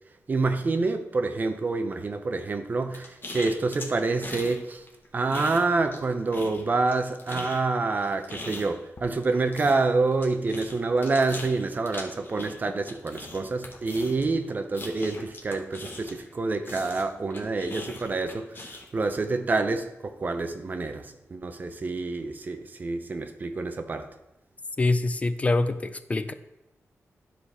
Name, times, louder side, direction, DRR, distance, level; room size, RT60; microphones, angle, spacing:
voice 1, 0.3-4.8 5.1-24.1, right 3 dB, 35° right, 0.6 m, -27 dB
sound 1, 2.9-4.6 4.9-6.0 6.3-16.3 16.6-19.0, left 2 dB, 40° left, 1.2 m, -40 dB
voice 2, 24.8-26.3, left 2 dB, 25° left, 0.4 m, -25 dB
12.0 x 4.8 x 4.3 m
wide cardioid pair, 160°, 5 cm